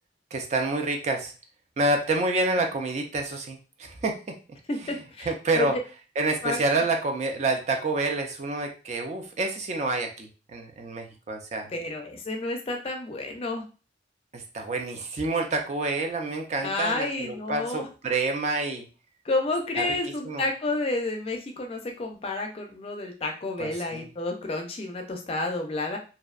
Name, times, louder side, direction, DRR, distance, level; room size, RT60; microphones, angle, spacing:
voice 1, 0.3-1.3 1.8-4.4 5.3-5.7 6.2-11.7 14.3-18.8 19.8-19.9 20.3-20.4 23.6-24.1, right 2 dB, 40° right, 4 dB, 0.4 m, -28 dB
voice 2, 4.7-5.8 6.4-6.8 11.7-13.6 16.6-17.9 19.2-26.0, left 2 dB, 30° left, 3 dB, 0.4 m, -30 dB
2.5 x 2.1 x 2.3 m, 0.34 s
head